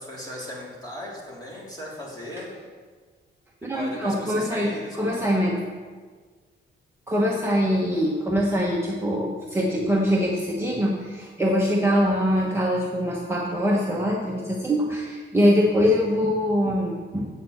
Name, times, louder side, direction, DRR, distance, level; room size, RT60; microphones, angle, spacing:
voice 1, 0.0-2.5 3.7-5.4, left 1 dB, 20° left, -5 dB, 3.2 m, -37 dB
voice 2, 3.6-4.7 4.9-5.6 7.1-17.3, equal, 10° right, -3 dB, 1.0 m, -23 dB
8.3 x 6.8 x 7.7 m, 1.5 s
wide cardioid pair, 160°, 20 cm